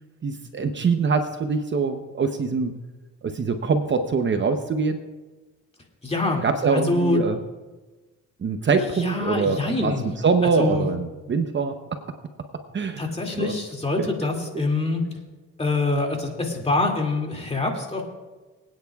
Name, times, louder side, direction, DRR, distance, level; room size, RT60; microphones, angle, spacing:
voice 1, 0.2-2.7 3.2-5.0 6.4-7.4 8.4-12.0 12.7-13.0 13.3-13.5 14.0-14.1, right 4 dB, 40° right, 7 dB, 0.8 m, -24 dB
voice 2, 6.0-6.4 6.7-7.2 9.0-10.1 10.6-10.9 13.0-15.0 15.6-18.0, left 2 dB, 20° left, 1 dB, 2.4 m, -25 dB
24.5 x 9.3 x 2.4 m, 1.2 s
cardioid pair, 90°, 30 cm